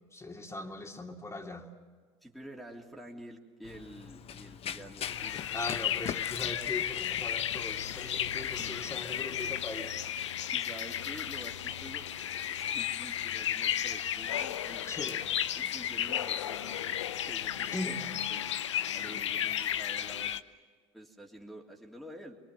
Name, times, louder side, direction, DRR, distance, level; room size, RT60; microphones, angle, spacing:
voice 1, 0.1-1.7 5.5-10.0 14.9-15.2 17.7-18.0, left 2 dB, 20° left, 3 dB, 2.9 m, -40 dB
voice 2, 2.2-5.6 8.6-8.8 10.5-12.0 12.5-14.9 15.5-18.5 18.9-20.3 20.9-22.4, right 1 dB, ahead, -2 dB, 3.1 m, -48 dB
Run, 3.6-9.2, left 9 dB, 40° left, 0.9 m, -43 dB
sound 1, 5.0-20.4, left 10 dB, 85° left, 0.7 m, -34 dB
25.5 x 22.5 x 7.6 m, 1.5 s
hypercardioid pair, 65°, 15 cm